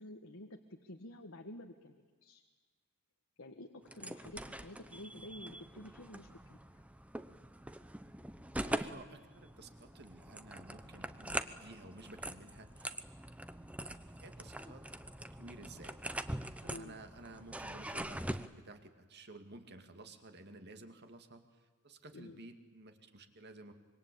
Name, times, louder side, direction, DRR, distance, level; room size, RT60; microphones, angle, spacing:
voice 1, 0.0-2.4 3.4-6.8 16.7-17.0 22.1-22.4, left 1 dB, 65° left, 3 dB, 1.6 m, -50 dB
sound 1, 3.9-18.5, right 1 dB, 5° right, 0.8 m, -43 dB
voice 2, 8.5-12.9 14.2-14.9 15.2-16.0 16.6-23.7, right 2 dB, 50° right, 7 dB, 2.4 m, -53 dB
26.0 x 24.0 x 8.6 m, 1.4 s
head